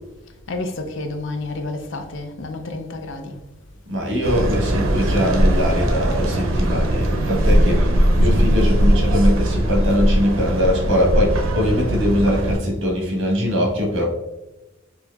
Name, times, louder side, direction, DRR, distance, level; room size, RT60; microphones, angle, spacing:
voice 1, 0.5-3.4, left 2 dB, 65° left, 0.5 m, -30 dB
voice 2, 3.9-14.0, equal, 65° right, 1.2 m, -22 dB
sound 1, 4.2-12.6, right 1 dB, 85° right, 0.6 m, -19 dB
4.3 x 2.8 x 2.3 m
head